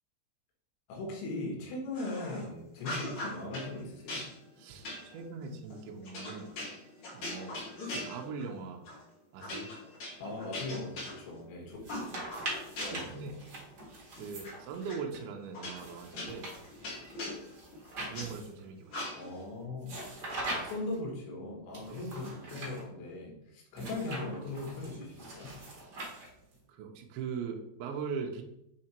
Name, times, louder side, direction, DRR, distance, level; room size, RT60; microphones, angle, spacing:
voice 1, 0.9-4.3 10.2-11.8 12.8-13.4 19.2-20.0 20.6-25.6, left 2 dB, 80° left, -1 dB, 3.7 m, -39 dB
sound 1, 1.9-2.5 2.8-3.7 4.1-8.5 8.8-9.0 9.4-11.5 11.9-13.2 13.5-14.5 14.9-15.0 15.5-18.3 18.9-19.4, left 1 dB, 45° left, 3.2 m, -41 dB
voice 2, 4.6-6.5 7.1-7.6 7.8-8.8 9.3-9.7 12.8-13.3 14.1-16.5 18.1-19.1 21.9-22.1 26.7-28.4, right 5 dB, 80° right, 2 dB, 2.3 m, -40 dB
sound 2, 11.7-15.2 15.8-18.6 19.8-21.0 21.7-22.8 23.7-26.6, right 2 dB, 55° right, 1.1 m, -42 dB
7.6 x 3.7 x 4.4 m, 0.81 s
omnidirectional pair, 5.1 m